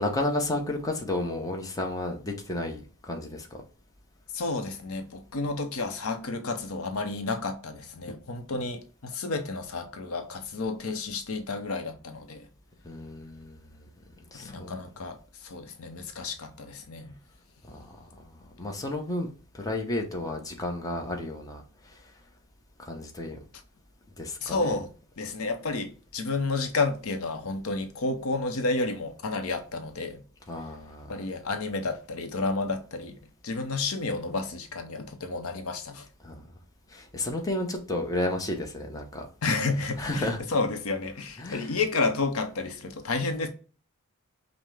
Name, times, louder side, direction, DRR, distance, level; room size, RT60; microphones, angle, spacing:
voice 1, 0.0-3.6 12.8-13.6 14.3-14.7 17.7-18.3 18.6-21.6 22.8-23.4 24.2-24.7 30.5-31.2 36.2-36.5 36.9-39.3 40.0-40.4 41.4-41.7, left 1 dB, 15° left, 0.7 m, -32 dB
voice 2, 4.3-12.5 14.3-17.2 24.4-24.9 25.2-30.2 31.1-33.2 33.4-36.1 39.4-43.5, left 3 dB, 75° left, 0.7 m, -31 dB
5.5 x 2.0 x 3.2 m
head